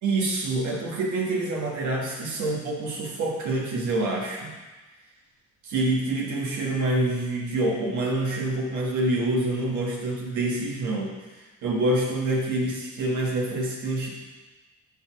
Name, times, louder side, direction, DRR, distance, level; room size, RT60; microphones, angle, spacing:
voice 1, 0.0-4.5 5.6-14.1, right 2 dB, 75° right, -3 dB, 1.4 m, -26 dB
6.1 x 5.3 x 5.8 m, 1.2 s
cardioid pair, 90°, 30 cm